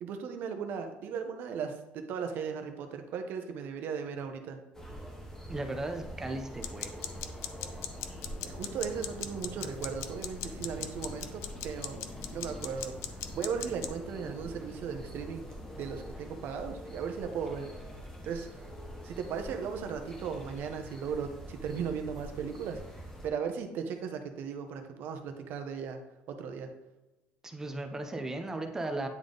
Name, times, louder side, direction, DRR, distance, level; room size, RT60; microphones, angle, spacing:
voice 1, 0.0-4.6 8.4-12.0 12.3-15.4 15.8-17.7 18.2-18.6 19.0-22.8 23.2-26.0 26.3-26.7, right 6 dB, 55° right, 6 dB, 0.8 m, -37 dB
sound 1, 4.7-23.3, equal, 10° left, 0.9 m, -45 dB
voice 2, 5.5-7.0 27.4-29.1, right 2 dB, 10° right, 5 dB, 0.5 m, -36 dB
sound 2, 6.6-14.0, left 10 dB, 80° left, 0.5 m, -40 dB
9.3 x 3.6 x 3.8 m, 1.0 s
cardioid pair, 170°, 4 cm